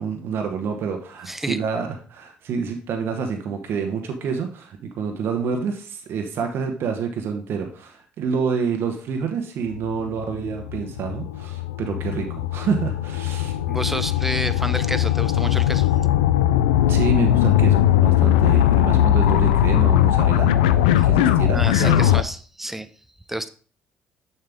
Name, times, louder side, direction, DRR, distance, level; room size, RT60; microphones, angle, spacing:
voice 1, 0.0-13.6 16.9-22.2, right 6 dB, 65° right, 4 dB, 1.0 m, -28 dB
voice 2, 1.3-1.6 13.7-15.9 21.5-22.9 23.3-23.5, right 1 dB, 5° right, 12 dB, 0.6 m, -29 dB
sound 1, 9.7-22.2, left 12 dB, 90° left, 0.3 m, -19 dB
6.9 x 5.7 x 3.5 m, 0.42 s
hypercardioid pair, 55°, 4 cm